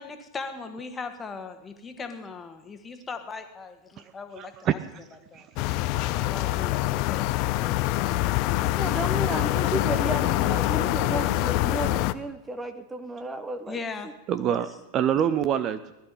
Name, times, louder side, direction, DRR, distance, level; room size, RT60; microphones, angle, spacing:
voice 1, 0.0-4.8 5.3-5.5 6.0-8.8 13.7-14.1 14.4-14.6, left 4 dB, 15° left, 7 dB, 1.7 m, -39 dB
voice 2, 4.4-5.0 5.3-5.5 14.3-15.9, right 9 dB, 35° right, 12 dB, 0.6 m, -26 dB
sound 1, 5.6-12.1, left 17 dB, 45° left, 0.6 m, -25 dB
voice 3, 8.5-13.8, right 2 dB, 10° right, 8 dB, 1.0 m, -33 dB
19.5 x 12.0 x 5.5 m, 0.96 s
figure-of-eight pair, 90°, 0 cm